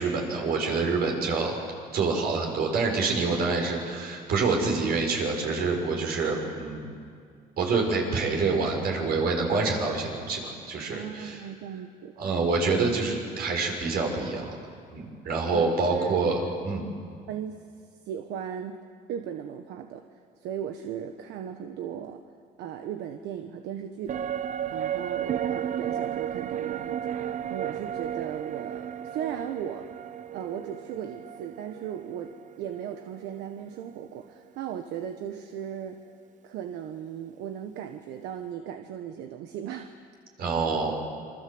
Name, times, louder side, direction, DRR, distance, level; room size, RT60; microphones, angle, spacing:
voice 1, 0.0-1.5 1.9-6.9 7.6-11.4 12.2-14.5 14.9-16.9 40.4-41.0, right 4 dB, 65° right, 1 dB, 6.5 m, -27 dB
voice 2, 10.9-12.1 15.5-16.5 17.3-17.6 18.1-18.8 19.1-20.0 20.4-22.2 22.6-24.2 24.7-27.1 27.5-29.9 30.3-32.3 32.6-36.0 36.4-39.9, right 9 dB, 85° right, 6 dB, 1.3 m, -37 dB
sound 1, 24.1-33.6 33.9-34.0, right 9 dB, 45° right, 0.7 m, -34 dB
27.5 x 24.5 x 7.9 m, 2.2 s
cardioid pair, 110°, 17 cm